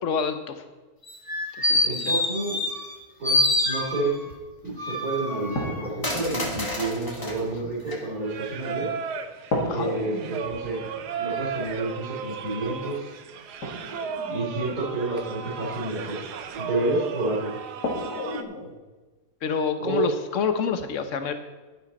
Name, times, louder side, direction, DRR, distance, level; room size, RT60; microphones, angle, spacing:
voice 1, 0.0-0.6 1.6-2.1 9.7-9.9 19.4-21.3, left 6 dB, 55° left, 8 dB, 1.2 m, -28 dB
sound 1, 1.1-3.0 3.2-4.3 4.8-7.4 7.9-8.0, left 1 dB, 15° left, 1.5 m, -26 dB
voice 2, 1.8-2.6 3.2-4.1 4.6-8.9 9.7-10.8 11.2-13.1 14.3-16.3 16.6-17.5 19.8-20.1, right 2 dB, 65° right, -8 dB, 3.7 m, -29 dB
sound 2, 4.7-4.8 5.6-9.0 9.5-15.7 17.0-17.1 17.8-18.7, left 1 dB, 85° left, 2.6 m, -34 dB
Singing, 8.2-18.4, right 6 dB, 85° right, 1.3 m, -35 dB
11.5 x 10.5 x 4.2 m, 1.3 s
omnidirectional pair, 1.7 m